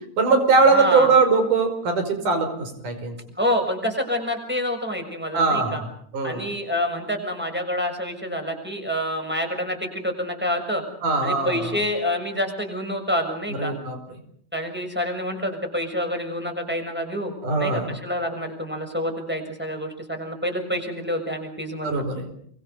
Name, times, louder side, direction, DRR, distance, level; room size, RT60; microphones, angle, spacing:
voice 1, 0.2-3.1 5.3-5.8 6.1-6.4 11.0-11.7 13.6-14.0 17.4-18.0 21.8-22.2, right 4 dB, 75° right, 7 dB, 6.8 m, -21 dB
voice 2, 0.7-1.1 3.4-5.8 6.2-10.8 11.2-13.7 14.5-22.0, equal, 5° right, 4 dB, 6.4 m, -27 dB
29.0 x 24.5 x 6.9 m, 0.65 s
omnidirectional pair, 3.6 m